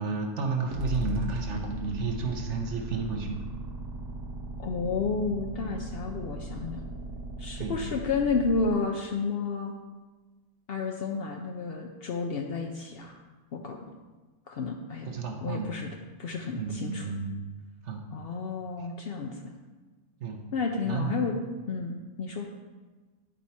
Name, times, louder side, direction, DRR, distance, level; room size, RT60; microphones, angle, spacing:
voice 1, 0.0-3.4 7.6-7.8 15.1-15.7 16.6-17.3 17.8-18.0 20.2-20.4 20.8-21.3, right 4 dB, 55° right, 3 dB, 1.0 m, -31 dB
sound 1, 0.7-8.7, equal, 85° right, 1.6 m, -37 dB
voice 2, 4.6-6.8 7.4-9.7 10.7-13.2 13.5-13.8 14.5-15.1 15.4-15.9 16.2-17.1 18.1-19.4 20.5-21.4 21.7-22.5, left 4 dB, 75° left, 2 dB, 0.5 m, -31 dB
10.0 x 4.6 x 4.2 m, 1.3 s
omnidirectional pair, 1.7 m